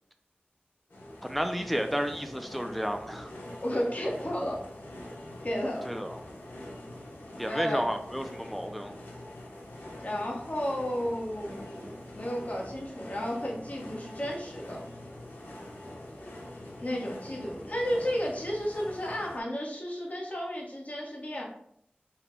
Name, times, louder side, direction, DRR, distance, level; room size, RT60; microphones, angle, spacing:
sound 1, 0.9-19.4, left 1 dB, 90° left, 0.9 m, -44 dB
voice 1, 1.2-3.3 5.8-6.2 7.4-8.9, equal, ahead, 6 dB, 0.4 m, -32 dB
voice 2, 3.6-4.6 5.4-5.9 7.5-7.9 10.0-14.8 16.8-21.4, equal, 45° left, -3 dB, 1.1 m, -33 dB
4.0 x 2.2 x 4.4 m, 0.70 s
wide cardioid pair, 55°, 4 cm